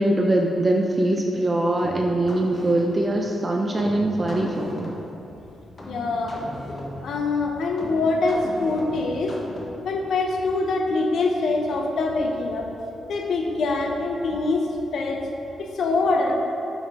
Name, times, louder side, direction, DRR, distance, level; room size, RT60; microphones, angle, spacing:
voice 1, 0.0-4.9, right 1 dB, 20° right, 1 dB, 0.4 m, -22 dB
sound 1, 1.8-10.0, left 1 dB, 30° left, 1.0 m, -38 dB
voice 2, 5.9-6.4 7.0-9.4 9.8-12.7 13.1-15.3 15.6-16.3, left 3 dB, 65° left, 2 dB, 0.7 m, -24 dB
7.8 x 4.4 x 4.1 m, 2.7 s
wide cardioid pair, 155°, 0 cm